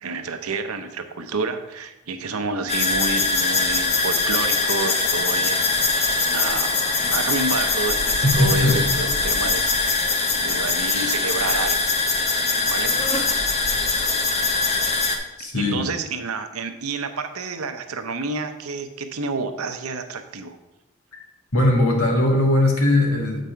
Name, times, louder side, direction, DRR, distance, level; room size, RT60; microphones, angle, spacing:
voice 1, 0.0-5.8 6.2-11.8 12.1-12.4 12.6-13.4 15.4-20.6, right 4 dB, 85° right, 8 dB, 0.7 m, -29 dB
sound 1, 2.7-15.2, left 3 dB, 30° left, 0.7 m, -22 dB
voice 2, 8.2-8.8 15.4-15.8 21.1-21.2 21.5-23.4, left 1 dB, 75° left, 0 dB, 1.7 m, -19 dB
7.4 x 5.4 x 4.5 m, 1.0 s
head